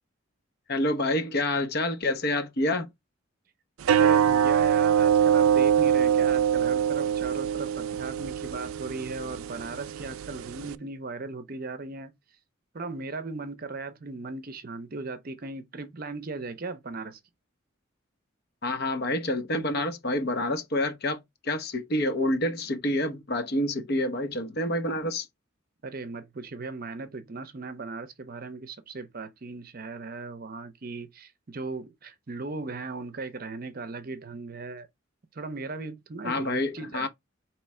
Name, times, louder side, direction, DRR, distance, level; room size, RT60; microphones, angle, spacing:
voice 1, 0.7-2.9 18.6-25.3 36.2-37.1, left 1 dB, 50° left, 0.8 m, -28 dB
sound 1, 3.8-10.7, right 8 dB, 90° right, 0.4 m, -24 dB
voice 2, 3.9-12.1 12.7-17.2 25.8-34.9 35.3-37.1, right 3 dB, 45° right, 0.6 m, -37 dB
4.5 x 3.1 x 3.1 m
head